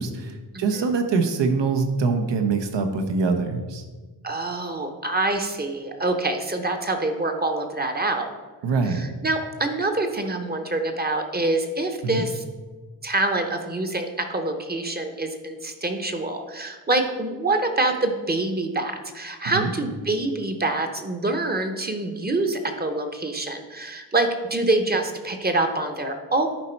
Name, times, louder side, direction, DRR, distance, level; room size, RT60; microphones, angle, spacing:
voice 1, 0.0-3.8 8.6-9.1 12.0-12.2 19.4-19.7, right 4 dB, 80° right, 6 dB, 1.0 m, -24 dB
voice 2, 4.2-8.3 8.8-12.4 13.0-26.5, right 2 dB, 25° right, 6 dB, 0.8 m, -26 dB
11.0 x 4.3 x 4.4 m, 1.3 s
wide cardioid pair, 120°, 42 cm